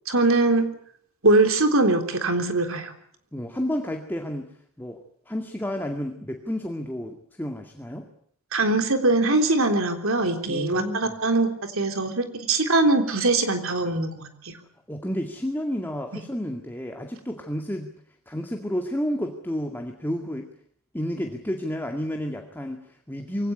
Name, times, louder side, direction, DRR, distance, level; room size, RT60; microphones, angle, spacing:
voice 1, 0.1-0.6 1.2-2.9 8.5-14.5, right 2 dB, 65° right, 7 dB, 3.6 m, -22 dB
voice 2, 3.3-5.0 5.3-8.1 10.5-11.1 14.9-17.9 18.3-20.5 20.9-23.5, equal, 10° left, 4 dB, 2.1 m, -31 dB
23.5 x 17.5 x 9.9 m, 0.65 s
head